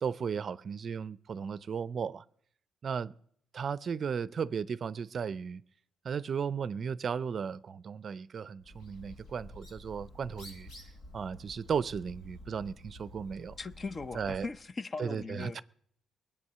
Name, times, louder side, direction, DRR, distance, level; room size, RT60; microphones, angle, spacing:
voice 1, 0.0-2.2 2.8-3.1 3.5-5.6 6.0-10.7 11.1-13.5 14.1-14.5 15.0-15.6, right 6 dB, 50° right, 0.5 m, -35 dB
Bird, 8.6-14.6, left 1 dB, 85° left, 5.5 m, -50 dB
voice 2, 13.6-15.6, left 3 dB, 35° left, 0.6 m, -39 dB
20.5 x 8.6 x 6.8 m
cardioid pair, 90°, 0 cm